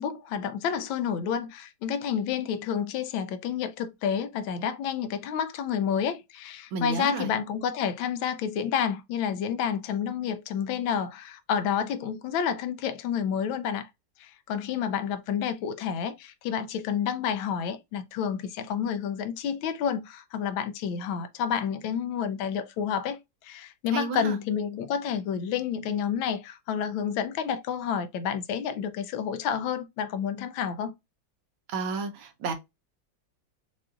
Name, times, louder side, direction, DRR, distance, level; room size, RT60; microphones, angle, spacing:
voice 1, 0.0-13.9 14.2-30.9, left 8 dB, 85° left, 1.4 m, -29 dB
voice 2, 6.7-7.3 23.9-24.4 31.7-32.5, right 4 dB, 85° right, 1.6 m, -31 dB
5.8 x 2.5 x 2.4 m
omnidirectional pair, 2.1 m